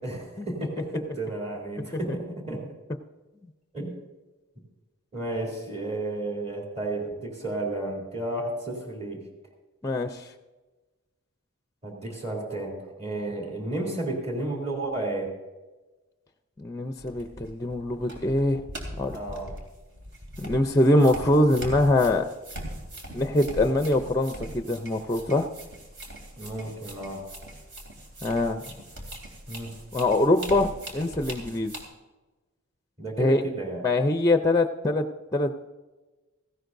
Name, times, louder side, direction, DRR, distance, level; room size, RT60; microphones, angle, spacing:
voice 1, 0.0-2.6 3.7-4.0 5.1-9.2 11.8-15.3 19.1-19.6 26.4-27.2 29.5-29.7 33.0-33.8, right 2 dB, 30° right, -1 dB, 3.1 m, -32 dB
voice 2, 9.8-10.2 16.6-18.6 19.0-19.2 20.4-22.3 23.1-25.5 28.2-28.6 29.9-31.7 33.2-33.4 33.8-35.1 35.3-35.5, left 1 dB, 15° left, 7 dB, 0.5 m, -23 dB
sound 1, 17.0-31.8, right 1 dB, 60° right, 3.0 m, -41 dB
17.0 x 15.5 x 2.6 m, 1.2 s
head